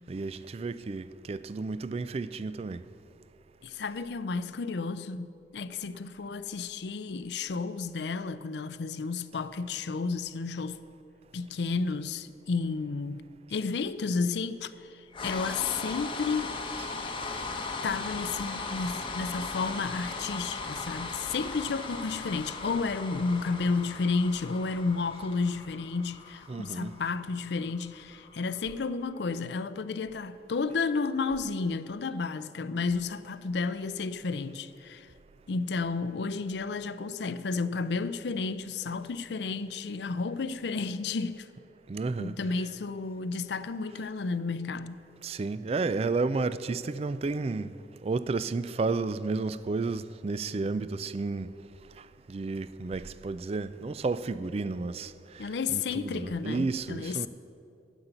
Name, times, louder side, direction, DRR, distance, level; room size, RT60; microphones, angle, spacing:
voice 1, 0.1-2.8 26.5-27.0 41.9-42.4 45.2-47.7 48.0-51.5 52.3-57.3, right 3 dB, 35° right, 0.3 m, -32 dB
voice 2, 3.6-10.8 11.3-13.2 13.5-16.6 17.8-35.1 35.5-41.5 42.2-45.0 55.4-57.3, left 4 dB, 65° left, 0.5 m, -32 dB
sound 1, 15.1-29.2, left 3 dB, 30° left, 0.9 m, -38 dB
9.7 x 8.2 x 8.9 m
head